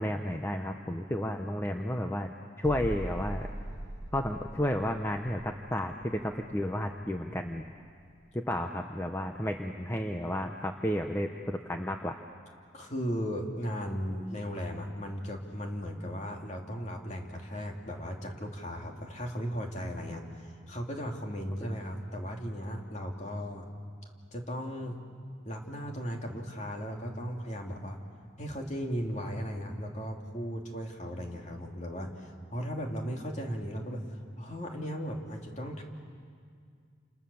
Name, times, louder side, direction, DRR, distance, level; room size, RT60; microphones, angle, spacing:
voice 1, 0.0-2.3 2.6-3.5 4.1-7.6 8.3-12.2, left 1 dB, 10° left, 4 dB, 0.9 m, -32 dB
sound 1, 2.6-8.3 8.6-8.8, right 1 dB, 20° right, 1.6 m, -42 dB
voice 2, 12.7-23.7 24.3-25.0 25.4-28.0 28.4-35.8, equal, 35° left, 1 dB, 2.9 m, -36 dB
29.0 x 28.0 x 7.1 m, 2.2 s
head